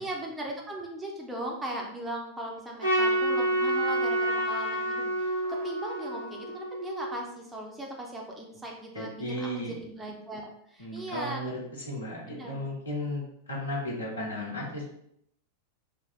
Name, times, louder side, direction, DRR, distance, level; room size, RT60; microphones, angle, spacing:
voice 1, 0.0-11.4 12.3-12.6, right 1 dB, 10° right, -1 dB, 0.5 m, -38 dB
Trumpet, 2.8-7.2, right 1 dB, 85° right, 1.0 m, -28 dB
voice 2, 8.9-9.8 10.8-11.6 11.9-14.9, left 1 dB, 75° left, -2 dB, 0.9 m, -34 dB
3.4 x 2.5 x 2.4 m, 0.72 s
figure-of-eight pair, 90°, 0 cm